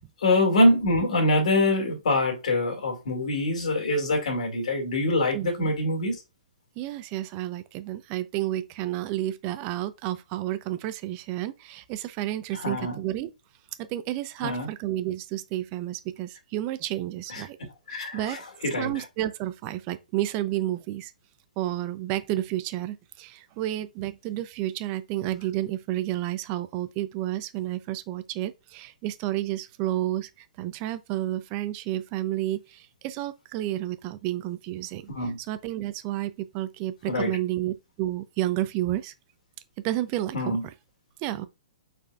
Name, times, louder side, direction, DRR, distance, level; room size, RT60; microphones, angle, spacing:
voice 1, 0.2-6.2 12.5-13.0 14.4-14.7 17.3-17.4 17.9-18.9 35.1-35.4 37.1-37.3 40.3-40.6, left 1 dB, 60° left, 2.3 m, -24 dB
voice 2, 5.3-5.7 6.8-13.3 13.8-17.6 17.9-18.4 18.8-21.1 21.6-30.3 30.6-35.1 35.5-39.1 39.8-40.6 41.2-41.4, right 14 dB, 35° right, 0.6 m, -31 dB
5.2 x 4.2 x 2.4 m
figure-of-eight pair, 120°, 4 cm